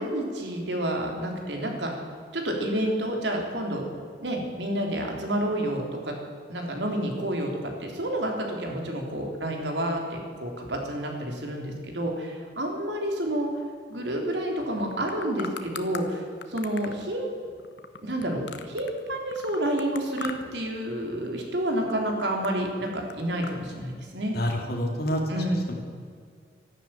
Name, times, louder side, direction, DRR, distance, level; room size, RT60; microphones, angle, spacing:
voice 1, 0.0-1.9 2.3-3.8 4.2-6.2 6.5-7.5 7.8-13.5 13.9-17.4 18.0-24.3 25.3-25.6, right 1 dB, 75° right, 1 dB, 3.5 m, -29 dB
sound 1, 14.7-16.0 16.4-19.0 19.3-20.7 20.9-21.4 21.8-23.6, left 5 dB, 75° left, 1.2 m, -40 dB
voice 2, 24.3-25.7, equal, 60° left, 1 dB, 3.1 m, -28 dB
13.5 x 12.0 x 9.1 m, 2.1 s
head